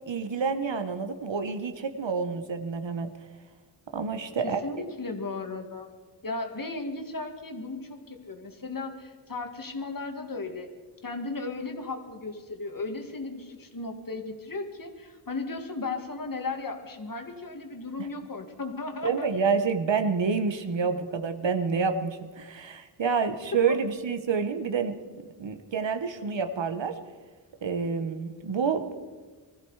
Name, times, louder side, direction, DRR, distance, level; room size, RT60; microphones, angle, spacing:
voice 1, 0.1-3.1 3.9-4.6 18.0-18.1 19.0-25.0 25.4-26.9 27.6-29.0, right 5 dB, 65° right, 7 dB, 1.3 m, -28 dB
voice 2, 4.4-5.9 6.2-10.7 11.0-19.3 23.7-23.8, left 3 dB, 45° left, 5 dB, 2.0 m, -35 dB
20.5 x 14.0 x 4.9 m, 1.4 s
wide cardioid pair, 90°, 48 cm